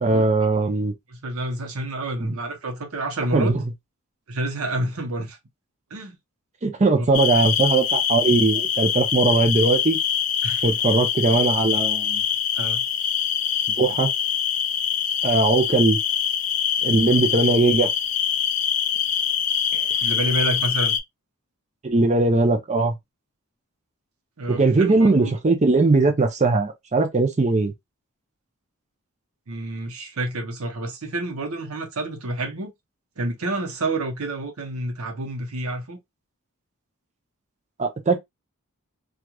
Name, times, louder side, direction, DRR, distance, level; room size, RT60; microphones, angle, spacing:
voice 1, 0.0-0.9 2.2-2.3 3.3-3.6 6.6-10.0 10.6-12.2 13.8-14.1 15.2-16.0 16.8-17.9 21.8-22.9 24.5-27.7 37.8-38.2, right 3 dB, 30° right, 0.6 m, -20 dB
voice 2, 1.1-3.6 4.3-5.4 5.9-6.2 6.9-7.5 10.4-10.8 11.3-11.4 12.6-12.8 20.0-21.0 24.4-25.4 29.5-32.7 33.2-36.0, right 2 dB, 75° right, 0.8 m, -29 dB
sound 1, 7.1-21.0, left 8 dB, 35° left, 0.3 m, -24 dB
3.0 x 2.4 x 2.3 m
head